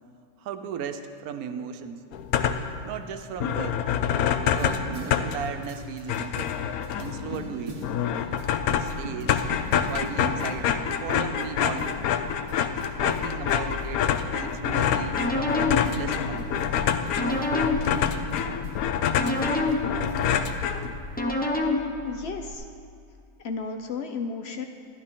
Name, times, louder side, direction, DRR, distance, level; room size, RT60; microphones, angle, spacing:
voice 1, 0.4-2.0 2.8-3.8 4.4-6.6 7.0-7.8 8.7-9.5 9.9-12.0 13.0-15.2 15.9-16.6, right 7 dB, 85° right, 9 dB, 1.1 m, -36 dB
sound 1, 2.1-2.8 3.1-3.2 3.4-21.2, left 8 dB, 90° left, 1.1 m, -27 dB
sound 2, 4.6-20.6, right 1 dB, 30° right, 0.9 m, -44 dB
sound 3, 14.6-22.5, left 2 dB, 10° left, 0.5 m, -30 dB
voice 2, 22.0-22.6 23.4-24.7, left 5 dB, 65° left, 6 dB, 0.7 m, -33 dB
12.0 x 11.5 x 3.7 m, 2.4 s
omnidirectional pair, 1.5 m